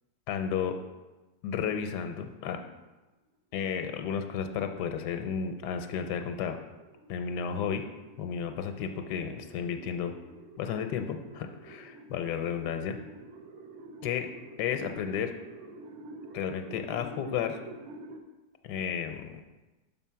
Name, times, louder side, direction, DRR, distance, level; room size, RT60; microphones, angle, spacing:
voice 1, 0.3-0.8 1.4-2.6 3.5-6.6 7.1-7.8 8.2-10.1 10.6-13.0 14.0-14.3 14.6-15.3 16.3-17.6 18.6-19.4, left 7 dB, 85° left, 7 dB, 1.2 m, -32 dB
sound 1, 5.4-18.2, right 2 dB, 70° right, 1.1 m, -49 dB
5.6 x 4.6 x 5.6 m, 1.1 s
omnidirectional pair, 1.8 m